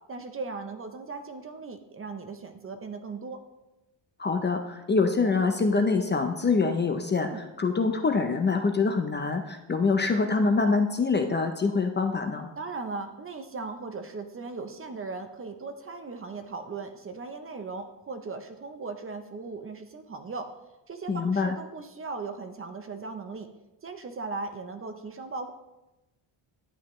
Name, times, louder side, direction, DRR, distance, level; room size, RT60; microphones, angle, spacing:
voice 1, 0.1-3.4 7.2-7.4 12.6-20.5 20.9-23.5 23.8-25.5, right 4 dB, 30° right, 7 dB, 0.6 m, -38 dB
voice 2, 4.2-12.5 21.1-21.5, left 4 dB, 25° left, 5 dB, 0.5 m, -25 dB
11.0 x 8.2 x 3.1 m, 0.98 s
cardioid pair, 140°, 47 cm